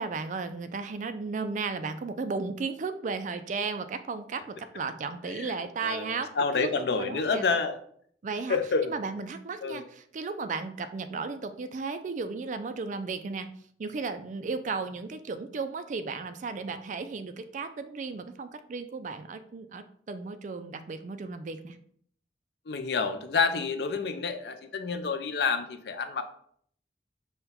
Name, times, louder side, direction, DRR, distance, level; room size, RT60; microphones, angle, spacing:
voice 1, 0.0-6.3 6.6-6.7 7.0-7.4 8.2-8.6 8.8-13.5 13.8-21.8, right 4 dB, 45° right, 10 dB, 0.4 m, -35 dB
voice 2, 5.3-7.8 8.5-9.0 9.6-9.8 22.7-26.2, left 4 dB, 65° left, 8 dB, 0.5 m, -29 dB
5.6 x 2.2 x 4.2 m, 0.63 s
head